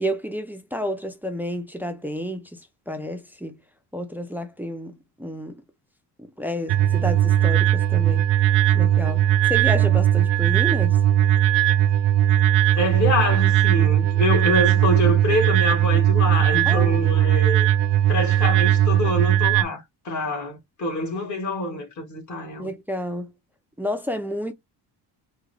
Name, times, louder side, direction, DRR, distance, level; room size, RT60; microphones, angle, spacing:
voice 1, 0.0-3.6 3.9-5.6 6.2-8.3 8.7-11.0 16.7-17.0 22.6-23.3 23.8-24.5, equal, 5° right, 0.4 m, -30 dB
sound 1, 6.7-19.6, right 11 dB, 75° right, 0.5 m, -19 dB
voice 2, 12.7-17.7 18.1-22.7, left 1 dB, 40° left, 1.6 m, -25 dB
3.6 x 2.2 x 3.2 m
cardioid pair, 115°, 43 cm